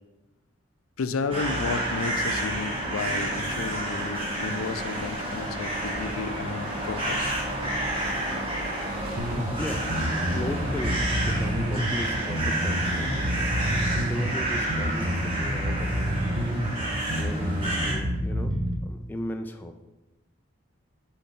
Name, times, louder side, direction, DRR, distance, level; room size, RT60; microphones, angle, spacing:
voice 1, 1.0-7.3, left 4 dB, 80° left, 11 dB, 0.5 m, -32 dB
sound 1, 1.3-17.9, right 1 dB, 25° right, 1.5 m, -30 dB
voice 2, 9.1-16.6 17.1-19.9, left 1 dB, 10° left, 4 dB, 0.3 m, -37 dB
sound 2, 9.2-18.8, equal, 70° right, 1.1 m, -28 dB
5.8 x 4.7 x 5.3 m, 1.1 s
head